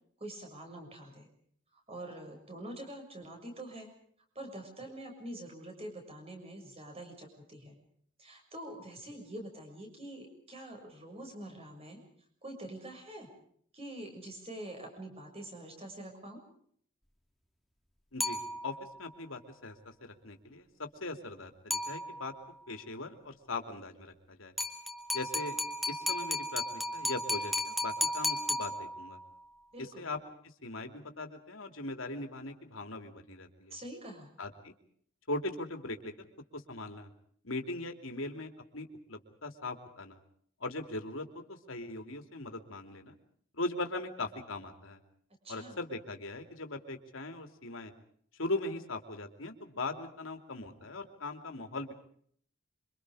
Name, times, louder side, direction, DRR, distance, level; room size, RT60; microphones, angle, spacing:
voice 1, 0.2-1.3 1.7-3.9 4.3-7.8 8.2-12.0 12.4-13.3 13.7-16.4 29.7-30.1 33.7-34.3 45.4-45.7, right 1 dB, 30° right, 3 dB, 6.5 m, -45 dB
voice 2, 18.1-22.3 22.7-24.5 25.1-25.6 25.9-29.2 29.8-30.2 30.6-33.8 34.4-34.7 35.3-36.3 36.5-37.1 37.4-40.2 40.6-43.2 43.5-45.0 45.5-47.9 48.4-51.9, left 2 dB, 75° left, 6 dB, 3.0 m, -40 dB
sound 1, 18.2-19.0 21.7-22.5 24.6-29.3, left 1 dB, ahead, 2.6 m, -34 dB
27.5 x 25.0 x 5.0 m, 0.62 s
head